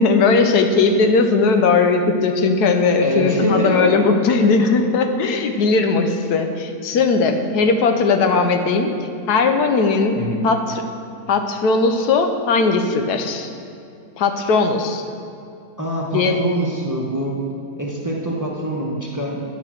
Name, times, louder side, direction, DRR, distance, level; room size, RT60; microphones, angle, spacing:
voice 1, 0.0-8.9 9.3-10.2 10.4-10.8 11.3-13.5 14.2-15.0 16.1-16.4, left 4 dB, 85° left, 6 dB, 1.3 m, -18 dB
voice 2, 3.0-3.9 10.2-10.5 15.8-17.4 17.8-19.4, equal, 15° right, -3 dB, 0.9 m, -24 dB
11.0 x 5.1 x 6.2 m, 2.6 s
omnidirectional pair, 1.7 m